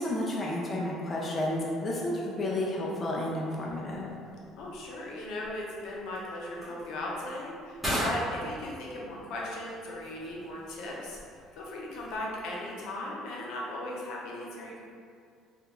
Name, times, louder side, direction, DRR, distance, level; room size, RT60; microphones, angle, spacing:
voice 1, 0.0-4.1, left 1 dB, 25° left, -4 dB, 0.4 m, -31 dB
sound 1, 3.5-12.7, equal, 5° right, 1.1 m, -40 dB
voice 2, 4.6-11.2 11.5-14.8, left 1 dB, 70° left, -3 dB, 0.6 m, -37 dB
3.4 x 2.4 x 2.9 m, 2.3 s
cardioid pair, 135°, 0 cm